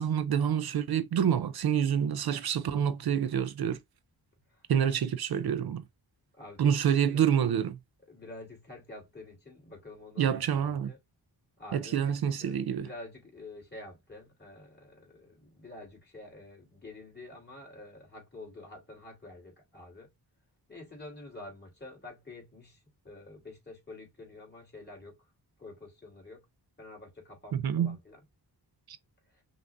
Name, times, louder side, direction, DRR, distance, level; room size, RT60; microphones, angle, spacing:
voice 1, 0.0-3.8 4.7-5.8 6.6-7.7 10.2-10.9 11.7-12.9 27.5-28.0 28.9-29.0, right 8 dB, 65° right, 0.5 m, -27 dB
voice 2, 6.3-7.3 8.1-11.0 11.6-12.6 12.8-20.1 20.7-25.1 25.6-26.4 26.8-28.2 29.3-29.4, left 2 dB, 25° left, 3.0 m, -48 dB
5.8 x 2.5 x 2.5 m
wide cardioid pair, 115°, 41 cm